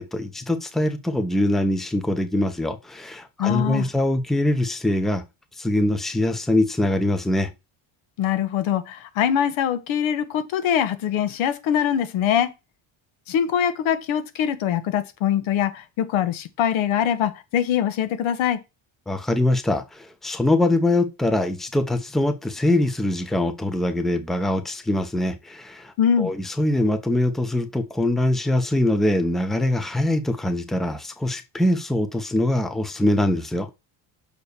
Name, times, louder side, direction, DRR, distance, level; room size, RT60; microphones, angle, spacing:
voice 1, 0.0-5.2 5.6-7.5 19.1-33.7, left 1 dB, ahead, 0.7 m, -23 dB
voice 2, 3.4-3.9 8.2-12.5 13.3-18.6 26.0-26.3, left 9 dB, 80° left, 1.4 m, -23 dB
6.8 x 4.5 x 6.7 m
cardioid pair, 145°, 48 cm